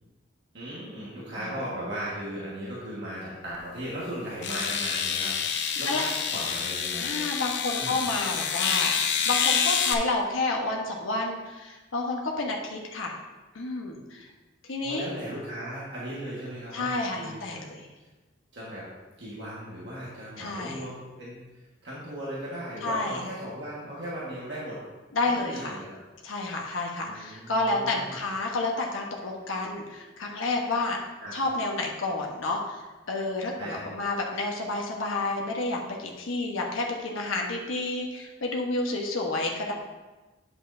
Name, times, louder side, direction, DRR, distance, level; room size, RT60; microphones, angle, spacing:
voice 1, 0.5-7.2 7.8-8.1 14.8-17.6 18.5-18.9 19.2-21.5 21.8-24.8 25.2-26.0 27.0-28.2 31.2-31.3 33.6-33.8, equal, 60° right, -7 dB, 1.6 m, -37 dB
voice 2, 1.3-1.6 5.8-6.0 7.0-8.9 9.3-13.1 13.5-14.3 14.7-15.1 16.7-17.9 20.4-20.8 22.8-23.2 25.1-25.8 26.2-31.0 31.3-39.7, left 2 dB, 85° left, 0 dB, 1.1 m, -30 dB
sound 1, 3.5-3.6 4.4-9.9, left 7 dB, 60° left, 0.6 m, -27 dB
8.9 x 7.4 x 2.7 m, 1.2 s
head